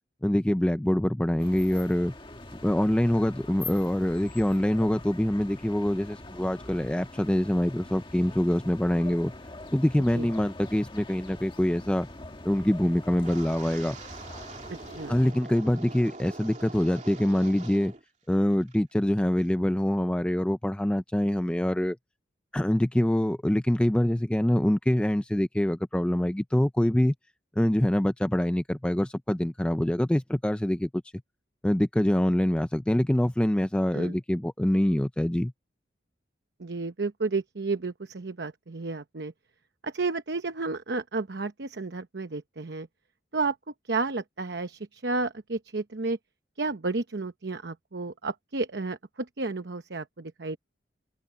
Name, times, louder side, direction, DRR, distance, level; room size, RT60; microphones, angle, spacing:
voice 1, 0.2-2.1 2.6-9.3 9.7-12.1 12.4-14.0 15.1-17.9 18.3-22.0 22.5-27.1 27.6-30.9 31.6-35.5, left 1 dB, 5° left, 0.3 m, -25 dB
sound 1, 1.4-15.3, left 2 dB, 30° left, 1.8 m, -44 dB
Wind, 13.2-18.0 18.3-18.8 19.2-19.5, right 3 dB, 40° right, 2.7 m, -44 dB
voice 2, 36.6-39.3 39.8-42.9 43.3-43.6 43.8-46.2 46.6-50.6, right 3 dB, 75° right, 0.9 m, -32 dB
head